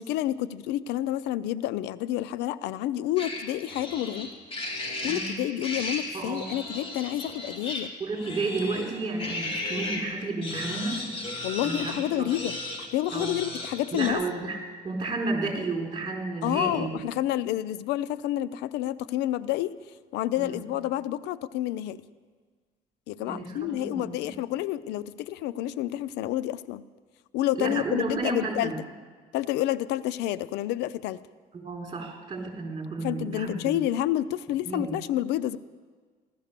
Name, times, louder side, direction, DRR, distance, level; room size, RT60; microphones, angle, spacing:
voice 1, 0.0-4.3 5.0-7.9 11.4-14.2 16.4-19.8 20.1-22.0 23.1-26.8 27.3-28.7 29.3-31.2 33.0-35.6, left 13 dB, 90° left, 17 dB, 0.5 m, -29 dB
sound 1, 3.2-10.1 10.4-14.1, left 2 dB, 35° left, 2.7 m, -35 dB
voice 2, 5.0-5.3 6.1-6.5 8.0-11.0 11.6-12.4 13.1-13.4 13.9-14.6 14.8-16.9 20.4-20.6 23.2-24.2 27.6-28.7 31.5-33.8 34.7-34.9, right 3 dB, 30° right, 1 dB, 3.7 m, -32 dB
16.0 x 13.0 x 6.7 m, 1.5 s
cardioid pair, 110°, 17 cm